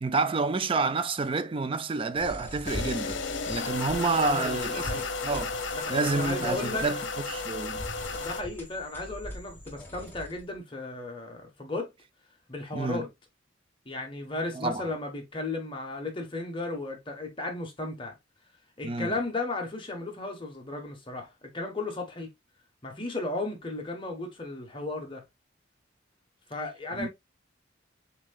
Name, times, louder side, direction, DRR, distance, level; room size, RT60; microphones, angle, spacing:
voice 1, 0.0-5.5 5.9-7.0 7.3-7.8 12.7-13.1 14.5-14.8 18.8-19.1 27.0-27.1, right 3 dB, 30° right, 0.4 m, -29 dB
sound 1, 2.1-10.6, left 1 dB, 10° left, 1.4 m, -42 dB
sound 2, 2.7-8.4, left 4 dB, 80° left, 0.7 m, -33 dB
voice 2, 4.2-5.1 5.7-6.9 8.1-11.9 12.5-13.1 13.8-18.2 18.8-22.3 22.8-25.2 26.5-27.1, left 2 dB, 25° left, 1.2 m, -35 dB
7.2 x 2.9 x 2.3 m
head